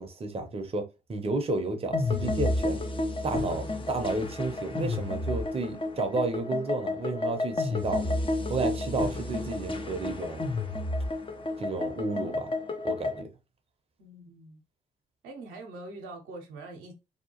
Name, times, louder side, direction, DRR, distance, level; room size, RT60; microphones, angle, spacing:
voice 1, 0.0-2.8 3.2-8.2 8.5-10.5 11.6-12.5 12.8-13.3, right 2 dB, 30° right, 0.7 m, -32 dB
sound 1, 1.9-13.2, left 2 dB, 25° left, 0.6 m, -31 dB
voice 2, 14.0-14.6 15.2-16.9, right 2 dB, 70° right, 0.8 m, -43 dB
2.8 x 2.2 x 2.9 m
hypercardioid pair, 45°, 21 cm